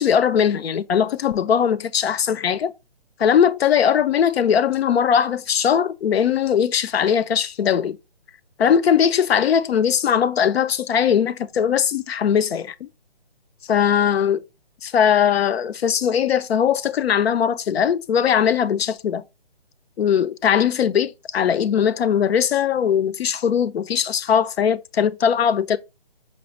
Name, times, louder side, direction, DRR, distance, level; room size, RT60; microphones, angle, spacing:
voice 1, 0.0-2.7 3.2-8.0 8.6-12.9 13.7-14.4 14.8-19.2 20.0-25.8, left 8 dB, 90° left, 0.5 m, -20 dB
5.2 x 2.0 x 2.9 m
hypercardioid pair, 175°, 30 cm